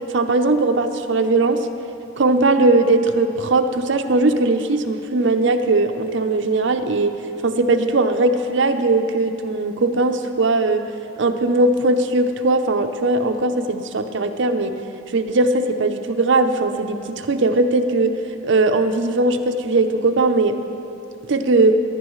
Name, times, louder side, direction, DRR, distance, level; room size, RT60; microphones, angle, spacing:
voice 1, 0.1-1.7 2.2-7.2 7.4-10.8 11.2-14.7 15.1-18.1 18.4-20.6 21.3-21.8, right 2 dB, 65° right, 7 dB, 0.6 m, -19 dB
16.5 x 10.0 x 3.1 m, 2.9 s
head